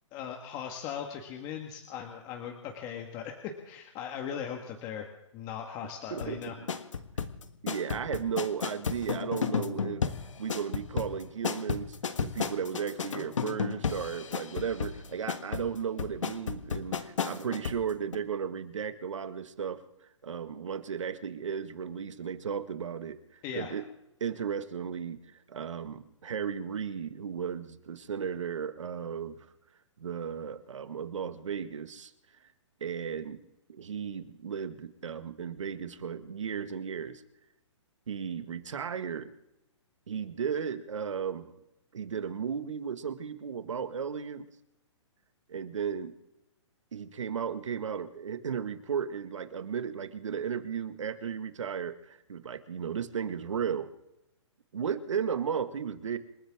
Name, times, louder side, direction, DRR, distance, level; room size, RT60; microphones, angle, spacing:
voice 1, 0.1-5.1 5.3-6.5 23.4-23.7, left 8 dB, 25° left, 3 dB, 1.7 m, -39 dB
voice 2, 6.1-6.7 7.6-10.0 10.4-19.8 20.2-23.8 24.2-25.2 25.5-29.4 30.0-32.1 32.8-33.4 33.7-37.2 38.1-39.3 40.1-41.5 41.9-44.5 45.5-46.1 46.9-53.9 54.7-56.2, right 7 dB, 80° right, 9 dB, 1.8 m, -35 dB
sound 1, 6.2-17.8 18.1-18.2, left 6 dB, 85° left, 1.6 m, -33 dB
28.0 x 13.5 x 3.7 m, 0.85 s
hypercardioid pair, 150°, 16 cm